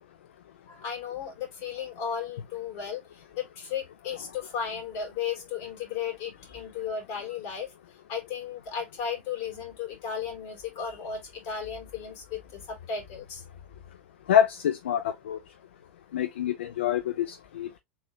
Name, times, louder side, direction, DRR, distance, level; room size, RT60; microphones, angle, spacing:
voice 1, 0.7-7.7 8.1-13.4, left 7 dB, 50° left, 3.0 m, -35 dB
voice 2, 14.3-15.4 16.1-17.8, left 9 dB, 70° left, 0.5 m, -26 dB
4.1 x 4.0 x 2.8 m
hypercardioid pair, 90°, 6 cm